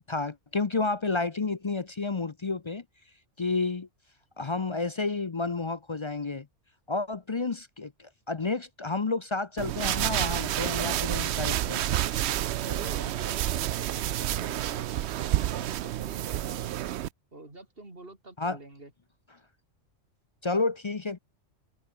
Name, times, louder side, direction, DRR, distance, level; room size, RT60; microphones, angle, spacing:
voice 1, 0.1-2.8 3.4-3.9 4.4-6.5 6.9-11.8 18.4-18.6 20.4-21.2, left 3 dB, 35° left, 0.5 m, -30 dB
sound 1, 9.6-17.1, right 12 dB, 70° right, 0.8 m, -29 dB
voice 2, 12.5-16.7 17.3-18.9, right 2 dB, 50° right, 4.6 m, -46 dB
omnidirectional pair, 1.3 m